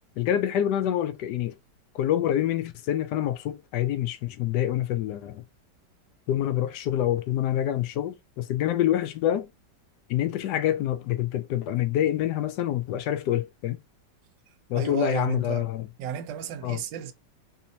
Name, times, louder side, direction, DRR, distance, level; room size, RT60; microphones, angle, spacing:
voice 1, 0.2-1.6 1.9-5.4 6.3-9.5 10.1-13.8 14.7-15.9 16.6-16.8, left 11 dB, 75° left, 1.1 m, -26 dB
voice 2, 14.7-15.7 16.0-17.1, right 8 dB, 85° right, 1.3 m, -33 dB
4.1 x 2.8 x 2.6 m
omnidirectional pair, 1.9 m